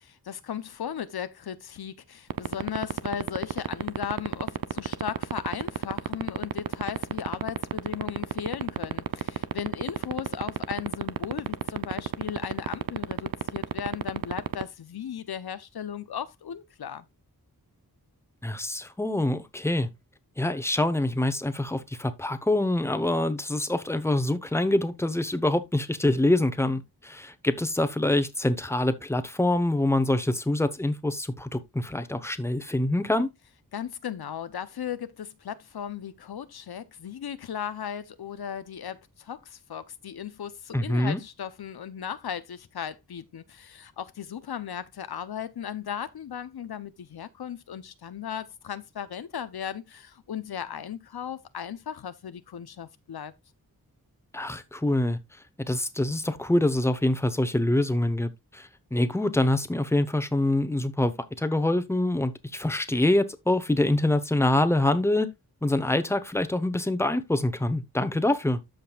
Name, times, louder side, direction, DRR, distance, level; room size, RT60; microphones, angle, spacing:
voice 1, 0.0-17.1 33.7-53.3, left 9 dB, 80° left, 0.7 m, -36 dB
sound 1, 2.3-14.6, right 9 dB, 65° right, 0.6 m, -27 dB
voice 2, 18.4-19.9 20.4-33.3 40.7-41.2 54.3-55.2 55.6-65.3 65.6-68.6, left 1 dB, 5° left, 0.9 m, -25 dB
13.5 x 5.2 x 2.4 m
wide cardioid pair, 95°, 37 cm